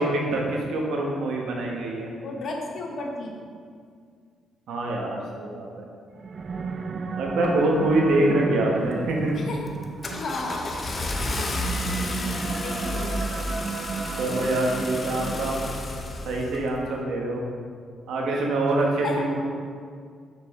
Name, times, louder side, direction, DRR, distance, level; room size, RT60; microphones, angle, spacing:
voice 1, 0.0-2.1 4.7-5.8 7.2-9.4 10.1-10.2 12.3-12.4 14.2-15.7 16.2-17.4 18.1-19.4, right 2 dB, 80° right, -1 dB, 1.3 m, -25 dB
voice 2, 2.2-3.3 9.3-9.7 10.1-10.8 11.4-11.5 12.6-13.5 18.3-18.5 19.0-19.2, left 2 dB, 55° left, 0 dB, 1.1 m, -34 dB
sound 1, 6.1-16.0, right 4 dB, 45° right, 0.4 m, -34 dB
Car / Engine starting, 8.9-9.2 9.7-16.6, left 2 dB, 35° left, 0.8 m, -31 dB
6.6 x 5.9 x 3.8 m, 2.1 s
cardioid pair, 90°, 0 cm